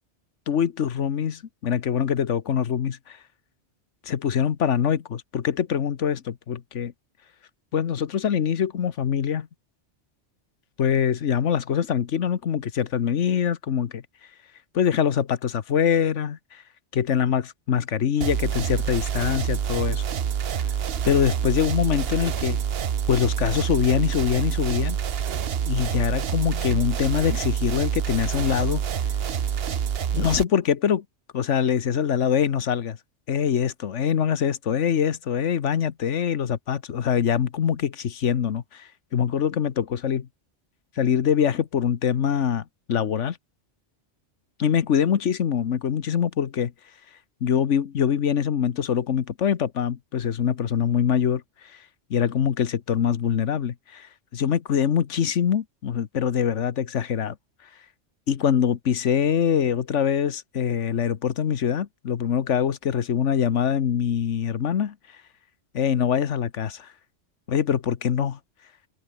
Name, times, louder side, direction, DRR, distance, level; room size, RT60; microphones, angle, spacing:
voice 1, 0.5-3.2 4.1-6.9 7.7-9.5 10.8-14.0 14.7-16.4 16.9-20.0 21.0-22.6 23.1-25.0 25.6-28.8 30.1-31.0 31.3-33.0 33.3-40.2 41.0-43.4 44.6-46.7 47.4-51.4 52.1-54.1 54.3-57.3 58.3-64.9 65.7-66.9 67.5-68.4, left 8 dB, 85° left, 1.4 m, -24 dB
sound 1, 18.2-30.4, right 8 dB, 60° right, 1.1 m, -27 dB
open air
omnidirectional pair, 1.2 m